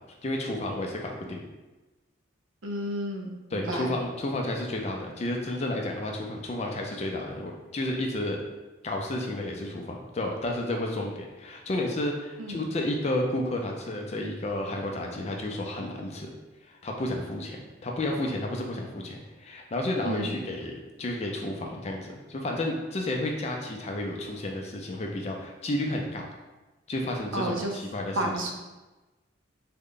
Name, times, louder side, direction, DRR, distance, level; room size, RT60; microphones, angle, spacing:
voice 1, 0.2-1.4 3.5-8.4 8.8-16.3 16.8-26.3 26.9-28.3, left 1 dB, 35° left, 1 dB, 0.4 m, -31 dB
voice 2, 2.6-3.9 12.4-12.6 20.0-20.4 27.3-27.8 28.2-28.5, right 1 dB, 80° right, 2 dB, 0.6 m, -31 dB
3.6 x 2.2 x 3.7 m, 1.1 s
head